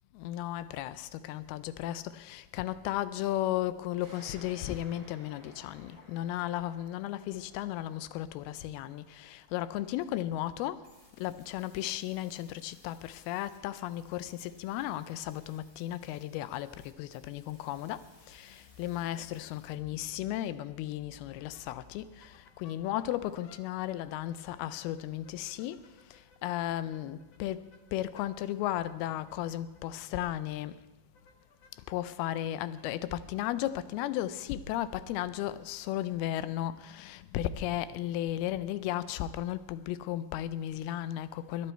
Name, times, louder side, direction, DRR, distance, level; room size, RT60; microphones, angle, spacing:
voice 1, 0.1-10.8 11.2-25.8 26.1-27.7 27.9-30.8 31.9-41.7, left 13 dB, 85° left, 2.5 m, -35 dB
sound 1, 4.0-11.2, right 1 dB, 30° right, 5.5 m, -57 dB
sound 2, 10.8-19.7, left 1 dB, 10° left, 1.6 m, -63 dB
sound 3, 21.3-35.6, left 4 dB, 65° left, 1.6 m, -64 dB
20.5 x 10.5 x 4.4 m
omnidirectional pair, 4.5 m